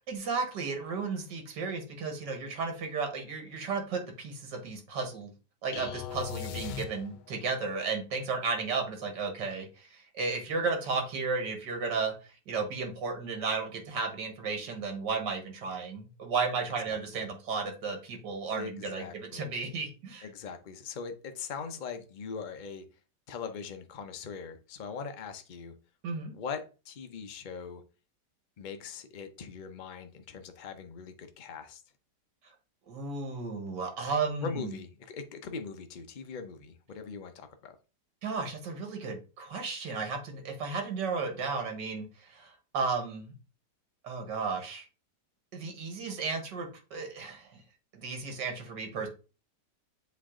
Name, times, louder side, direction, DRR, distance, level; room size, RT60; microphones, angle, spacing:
voice 1, 0.1-5.3 5.6-12.1 12.5-20.3 26.0-26.3 32.9-34.7 38.2-43.3 44.0-44.9 45.5-47.6 47.9-49.1, right 4 dB, 75° right, 4 dB, 2.0 m, -34 dB
sound 1, 5.7-7.5, left 9 dB, 80° left, 1.2 m, -39 dB
voice 2, 16.9-17.3 18.5-19.5 20.2-22.8 23.3-25.7 26.3-27.8 28.6-31.8 34.4-37.7, left 5 dB, 60° left, 7 dB, 0.4 m, -41 dB
7.5 x 3.4 x 3.7 m, 0.33 s
omnidirectional pair, 1.9 m